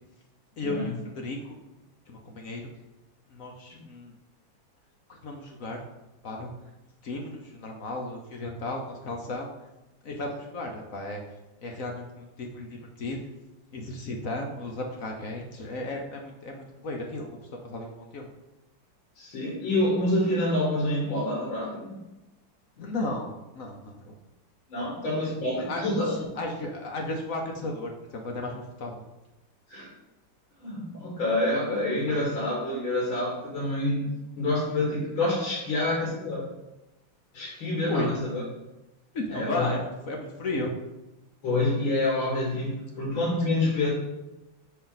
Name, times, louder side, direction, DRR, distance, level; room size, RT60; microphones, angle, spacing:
voice 1, 0.6-1.5 2.1-2.7 3.3-4.1 5.1-5.8 6.2-6.5 7.0-9.5 10.0-11.2 11.6-13.2 13.7-17.4 17.6-18.3 22.8-24.2 24.8-24.9 25.2-28.9 37.9-38.1 39.1-40.7, left 2 dB, 55° left, 2 dB, 1.1 m, -35 dB
voice 2, 19.2-22.0 24.7-26.2 29.7-29.9 30.6-34.1 34.4-36.4 37.3-38.4 39.3-39.7 41.4-43.9, left 1 dB, 85° left, -4 dB, 2.6 m, -27 dB
6.9 x 5.5 x 3.9 m, 1.0 s
omnidirectional pair, 2.1 m